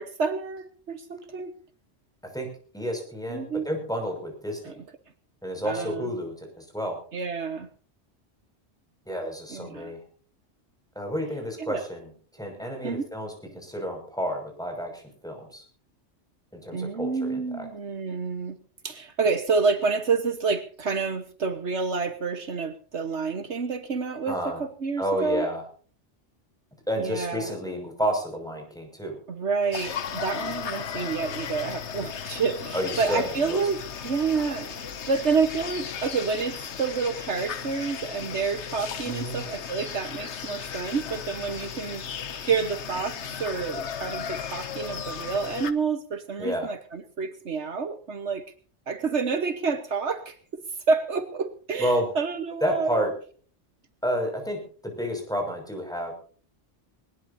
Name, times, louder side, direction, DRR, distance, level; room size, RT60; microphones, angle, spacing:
voice 1, 0.0-1.6 3.3-3.7 4.6-4.8 5.6-6.1 7.1-7.7 9.5-9.9 11.6-11.8 12.8-13.1 16.7-18.6 18.8-25.5 27.0-27.6 29.3-42.0 42.4-48.5 48.9-53.0, right 5 dB, 75° right, 9 dB, 1.6 m, -29 dB
voice 2, 2.7-4.8 5.4-7.0 9.1-10.0 10.9-15.6 16.5-17.7 24.3-24.6 25.0-25.6 26.9-29.2 32.7-33.6 39.0-39.4 46.4-46.7 51.8-52.1 52.6-53.1 54.0-56.1, equal, 5° left, 2 dB, 6.2 m, -30 dB
sound 1, 29.7-45.7, left 7 dB, 75° left, 1.3 m, -36 dB
20.5 x 20.0 x 2.7 m, 0.41 s
omnidirectional pair, 1.2 m